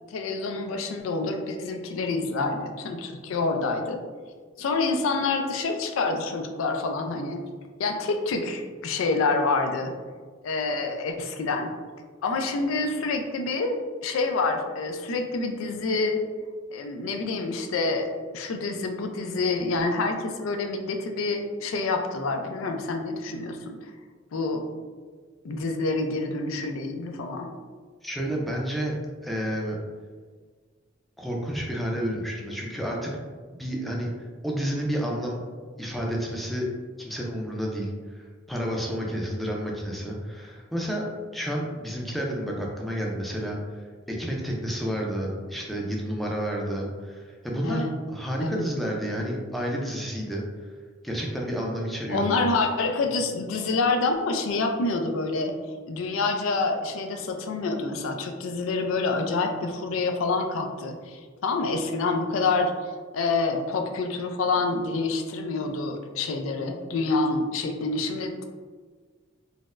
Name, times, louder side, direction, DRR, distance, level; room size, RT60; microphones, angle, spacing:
voice 1, 0.1-4.0 4.6-7.4 7.8-9.9 10.4-11.7 12.2-16.2 16.7-23.8 24.3-24.7 25.4-27.5 47.6-47.9 48.4-48.7 52.1-55.5 55.9-68.4, left 3 dB, 85° left, 5 dB, 0.4 m, -27 dB
voice 2, 28.0-28.9 29.2-29.8 31.2-33.2 33.5-35.4 35.8-36.7 37.0-50.4 51.0-52.4, equal, ahead, -2 dB, 0.4 m, -30 dB
4.1 x 2.0 x 2.4 m, 1.5 s
head